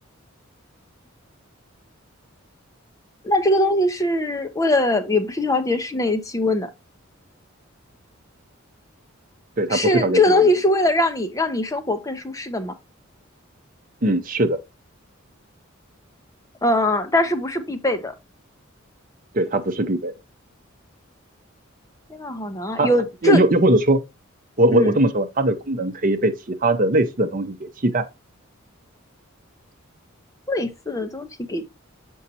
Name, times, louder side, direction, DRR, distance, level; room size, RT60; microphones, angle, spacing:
voice 1, 3.2-6.7 9.7-12.7 16.6-18.1 22.1-23.4 24.7-25.0 30.5-31.6, left 1 dB, 15° left, 0.7 m, -21 dB
voice 2, 9.6-10.4 14.0-14.6 19.3-20.1 22.8-22.9 23.2-24.0 24.6-28.1, right 1 dB, 40° right, 0.8 m, -20 dB
7.2 x 5.4 x 2.8 m
head